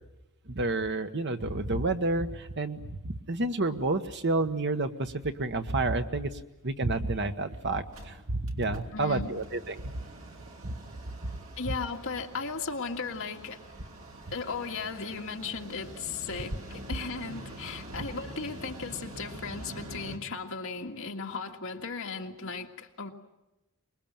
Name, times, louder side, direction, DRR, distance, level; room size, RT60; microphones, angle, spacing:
voice 1, 0.5-6.3 6.6-9.7 10.6-10.7, right 2 dB, 50° right, 8 dB, 1.2 m, -30 dB
Mechanical fan, 7.1-7.2 7.5-7.6 7.8-20.2, right 1 dB, 65° right, 3.1 m, -46 dB
voice 2, 8.9-9.4 11.6-13.6 14.3-23.1, left 4 dB, 65° left, 2 dB, 2.0 m, -36 dB
24.5 x 21.5 x 8.8 m, 0.98 s
head